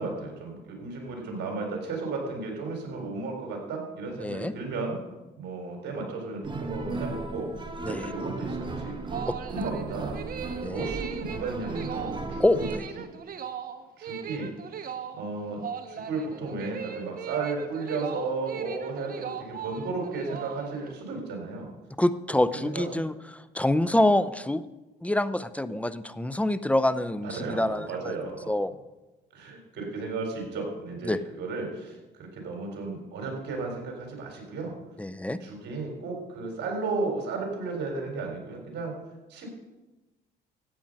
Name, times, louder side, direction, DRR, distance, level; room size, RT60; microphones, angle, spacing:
voice 1, 0.0-5.0 5.4-7.5 7.8-9.2 9.5-10.2 10.7-12.7 14.0-14.5 15.1-15.6 15.9-21.7 22.6-22.9 27.2-28.5 29.3-34.7 35.4-38.9 39.3-39.5, right 3 dB, 65° right, 2 dB, 4.1 m, -34 dB
voice 2, 4.2-4.5 7.8-8.1 9.3-9.4 10.6-10.9 12.4-12.9 22.0-24.6 25.0-28.2 28.5-28.7 31.1-31.2 35.0-35.4, left 1 dB, 5° left, 14 dB, 0.6 m, -26 dB
sound 1, 6.4-12.8, right 3 dB, 25° right, 1.4 m, -36 dB
sound 2, 8.9-21.0, right 8 dB, 50° right, 1.1 m, -38 dB
14.0 x 8.8 x 5.4 m, 1.1 s
supercardioid pair, 80°, 19 cm